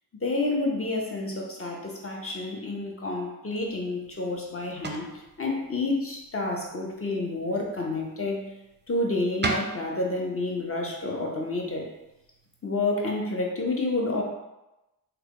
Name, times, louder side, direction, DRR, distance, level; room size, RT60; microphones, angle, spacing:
voice 1, 0.1-8.5 8.9-11.9 12.6-14.2, left 2 dB, 35° left, -1 dB, 0.9 m, -29 dB
sound 1, 3.6-12.8, right 3 dB, 30° right, 0.5 m, -40 dB
3.3 x 2.3 x 3.7 m, 0.96 s
cardioid pair, 45°, 38 cm